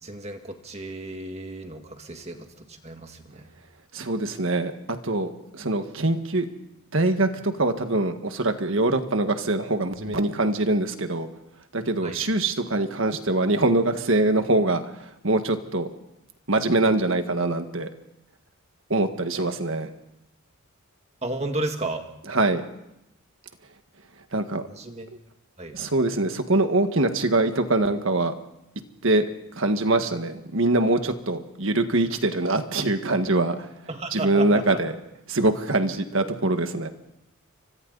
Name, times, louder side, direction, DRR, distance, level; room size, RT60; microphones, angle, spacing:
voice 1, 0.0-2.4 2.8-3.5 12.0-12.2 21.2-22.0 24.7-25.1 25.6-25.8 33.9-34.8, right 2 dB, 30° right, 5 dB, 2.0 m, -33 dB
voice 2, 3.9-6.5 6.9-11.3 11.7-14.8 15.2-15.9 16.5-17.9 18.9-19.9 22.3-22.6 24.3-24.7 25.7-28.3 29.0-29.3 29.6-33.5 34.1-34.9 35.3-36.9, right 2 dB, 60° right, 7 dB, 1.7 m, -23 dB
30.0 x 24.5 x 4.1 m, 0.85 s
head